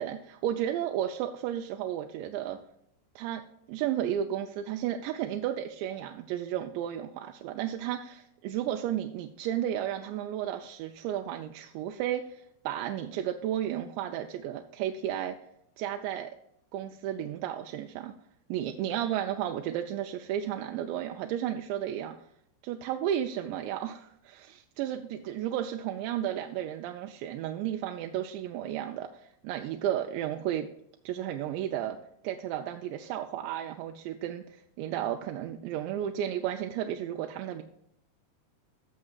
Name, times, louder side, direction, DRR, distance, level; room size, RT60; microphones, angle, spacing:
voice 1, 0.0-2.6 3.2-3.4 3.7-15.4 15.8-16.3 16.7-18.2 18.5-22.2 22.6-30.7 31.1-32.0 32.2-37.6, right 11 dB, 90° right, 5 dB, 2.8 m, -33 dB
17.5 x 6.5 x 2.4 m, 0.77 s
omnidirectional pair, 4.9 m